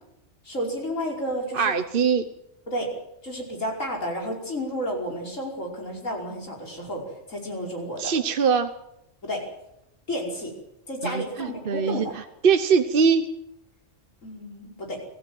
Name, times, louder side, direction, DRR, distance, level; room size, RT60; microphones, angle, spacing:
voice 1, 0.4-1.7 2.7-2.9 3.2-7.0 7.3-8.1 9.2-9.4 10.1-10.5 10.9-12.1 14.2-15.0, equal, 80° left, 0 dB, 5.6 m, -31 dB
voice 2, 1.5-2.2 8.0-8.7 11.0-13.2, right 6 dB, 45° right, 9 dB, 1.1 m, -22 dB
25.0 x 15.5 x 7.8 m, 0.83 s
omnidirectional pair, 1.3 m